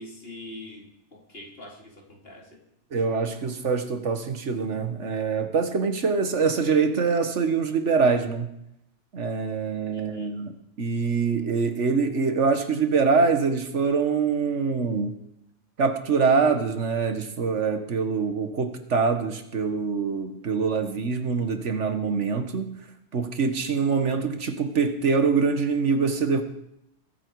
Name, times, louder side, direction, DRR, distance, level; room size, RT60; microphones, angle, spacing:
voice 1, 0.0-2.6 9.9-10.4, left 1 dB, 55° left, -1 dB, 3.2 m, -44 dB
voice 2, 2.9-8.5 9.1-15.1 15.8-22.7 23.1-26.4, right 5 dB, 85° right, 7 dB, 1.7 m, -24 dB
22.0 x 8.7 x 4.7 m, 0.79 s
omnidirectional pair, 1.2 m